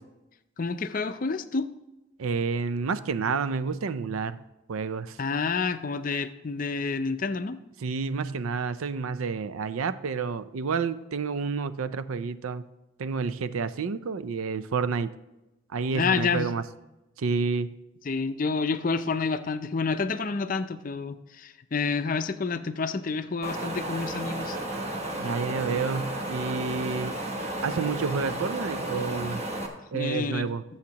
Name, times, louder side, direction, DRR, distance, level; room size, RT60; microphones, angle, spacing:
voice 1, 0.6-1.7 5.2-7.6 15.9-16.5 18.1-24.6 29.9-30.5, left 4 dB, 40° left, 10 dB, 0.5 m, -29 dB
voice 2, 2.2-4.4 4.7-5.2 7.8-12.6 13.0-15.1 15.7-16.6 17.2-17.7 25.2-27.2 27.6-29.4 29.9-30.6, right 5 dB, 90° right, 13 dB, 0.5 m, -29 dB
Wind, 23.4-29.7, right 1 dB, 30° right, 1.2 m, -33 dB
19.0 x 7.2 x 2.9 m, 0.99 s
head